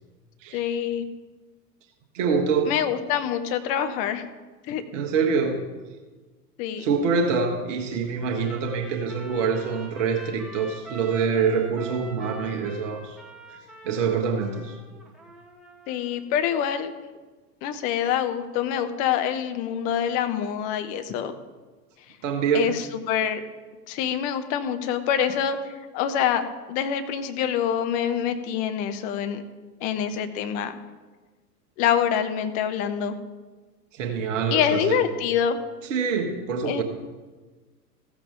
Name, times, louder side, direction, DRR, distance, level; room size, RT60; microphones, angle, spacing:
voice 1, 0.5-1.1 2.7-4.2 4.7-4.8 6.6-6.9 15.9-16.9 17.6-21.3 22.5-23.4 23.9-26.4 26.7-29.4 29.8-30.8 31.8-33.1 34.5-35.6 36.6-36.8, left 9 dB, 15° left, 8 dB, 0.4 m, -26 dB
voice 2, 2.1-2.7 4.9-5.6 6.8-13.2 13.8-14.8 22.2-22.7 33.9-35.0 35.8-36.8, right 5 dB, 50° right, 2 dB, 1.4 m, -25 dB
Trumpet, 8.2-16.3, right 2 dB, ahead, 1.3 m, -45 dB
15.0 x 7.3 x 3.7 m, 1.3 s
figure-of-eight pair, 90°, 49 cm